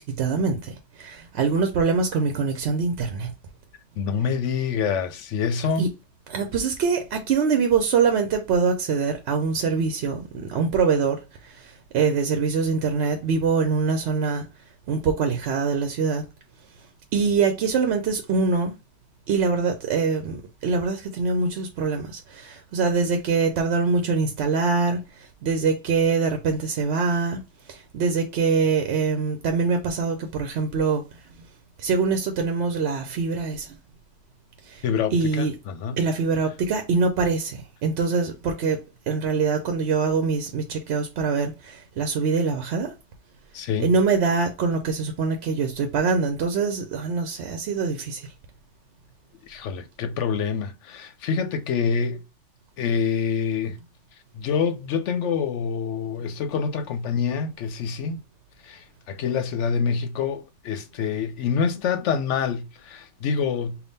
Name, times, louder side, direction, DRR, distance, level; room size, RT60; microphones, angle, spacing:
voice 1, 0.0-3.3 5.8-5.9 6.3-14.5 14.9-16.2 17.1-18.7 19.3-31.2 31.8-33.8 34.6-34.8 35.1-35.5 36.0-42.9 43.8-48.3, right 5 dB, 65° right, 0.8 m, -24 dB
voice 2, 4.0-5.9 34.8-36.0 43.5-43.9 49.4-52.2 52.8-53.8 54.3-58.2 58.6-63.8, left 6 dB, 80° left, 1.0 m, -26 dB
3.5 x 2.4 x 4.0 m
omnidirectional pair, 1.2 m